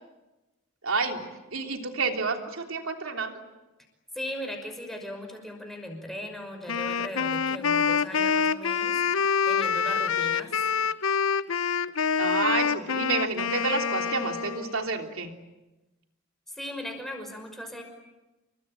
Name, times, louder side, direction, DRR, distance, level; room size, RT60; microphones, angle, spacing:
voice 1, 0.8-3.4 12.2-15.3, right 4 dB, 75° right, 4 dB, 3.2 m, -29 dB
voice 2, 4.1-9.0 9.4-10.6 16.5-17.8, left 1 dB, ahead, 4 dB, 5.8 m, -38 dB
Wind instrument woodwind instrument, 6.7-14.8, left 6 dB, 75° left, 0.9 m, -26 dB
28.5 x 23.5 x 9.0 m, 1.1 s
head